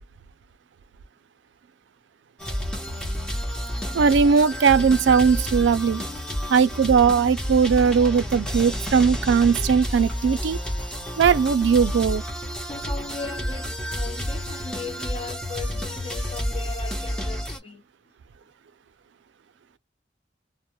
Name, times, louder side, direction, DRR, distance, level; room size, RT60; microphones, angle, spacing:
sound 1, 2.4-17.6, equal, 5° left, 0.8 m, -30 dB
voice 1, 3.9-6.0 6.5-10.6 11.2-12.2, right 6 dB, 80° right, 0.4 m, -19 dB
voice 2, 12.6-17.8, left 4 dB, 30° left, 0.9 m, -38 dB
2.2 x 2.1 x 2.9 m
head